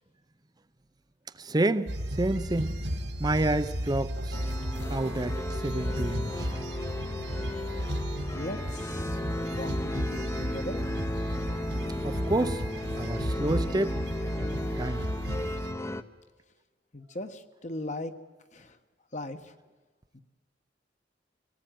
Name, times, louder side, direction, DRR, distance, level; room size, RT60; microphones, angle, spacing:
voice 1, 1.3-2.8 3.2-4.4 4.9-6.7 12.0-12.6 12.9-14.5 14.8-15.0, right 2 dB, 25° right, 0.6 m, -29 dB
sound 1, 1.9-15.7, equal, 85° right, 2.2 m, -33 dB
sound 2, 4.3-16.0, left 1 dB, 15° left, 0.9 m, -35 dB
voice 2, 7.3-7.6 8.3-10.9 16.9-18.1 18.5-18.8 19.1-19.5 20.1-20.2, left 1 dB, 45° left, 1.4 m, -39 dB
24.5 x 18.5 x 9.2 m
head